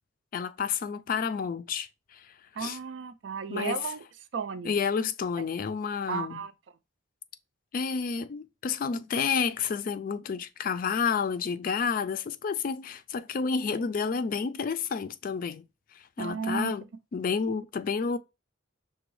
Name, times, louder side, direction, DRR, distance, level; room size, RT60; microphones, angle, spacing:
voice 1, 0.3-2.3 2.6-2.8 3.5-3.8 4.6-6.4 7.7-15.6 15.9-16.8 17.1-18.2, left 5 dB, 45° left, 0.3 m, -30 dB
voice 2, 2.6-4.0 4.3-4.7 6.1-6.5 16.2-16.7, right 5 dB, 65° right, 0.4 m, -33 dB
5.9 x 2.2 x 3.1 m
head